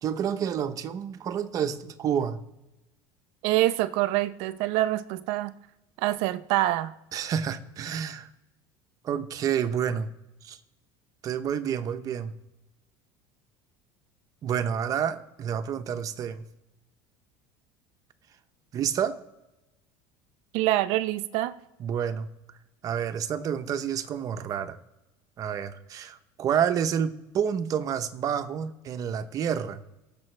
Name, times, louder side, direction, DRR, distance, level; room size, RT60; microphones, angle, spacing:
voice 1, 0.0-2.4 7.1-8.3 9.0-10.1 10.4-10.6 11.2-12.3 14.4-16.4 18.7-19.2 21.8-22.3 22.8-24.8 25.4-29.8, right 8 dB, 35° right, 0.8 m, -29 dB
voice 2, 3.4-5.5 6.0-6.9 20.5-21.5, right 15 dB, 70° right, 0.7 m, -25 dB
19.0 x 6.9 x 3.3 m
cardioid pair, 145°, 10 cm